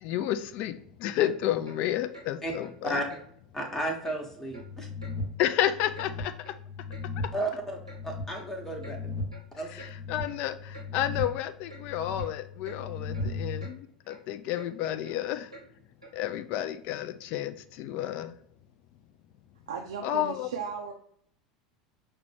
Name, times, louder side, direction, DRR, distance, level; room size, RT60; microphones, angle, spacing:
voice 1, 0.0-0.7 1.0-3.0 5.4-6.3 9.7-15.5 16.1-18.3 20.0-20.5, left 12 dB, 45° left, 12 dB, 0.3 m, -31 dB
Clock, 1.2-1.3 1.6-1.8 2.1-2.3 2.6-2.8 3.1-3.2 3.6-3.7 4.0-4.2 4.5-4.7 5.0-5.1 5.5-6.1 6.4-6.5 6.9-7.1 7.4-7.5 7.9-8.0 8.4-8.5 8.8-9.0 9.3-9.5 9.8-9.9 10.3-10.4 10.7-10.9 11.2-11.3 11.7-11.8 12.2-12.3 12.6-12.8 13.1-13.3 13.6-13.8 14.1-14.2 14.5-14.7 15.0-15.2 15.5-15.7 16.0-16.2, right 3 dB, 85° right, 0.9 m, -48 dB
voice 2, 3.5-4.9 7.3-7.8 8.0-9.1 9.6-9.7, right 1 dB, 10° left, 1 dB, 0.9 m, -33 dB
sound 1, 4.5-13.6, left 4 dB, 65° left, 1.0 m, -39 dB
voice 3, 19.7-20.9, right 6 dB, 70° right, 1 dB, 0.4 m, -36 dB
5.8 x 2.1 x 3.2 m, 0.66 s
figure-of-eight pair, 75°, 3 cm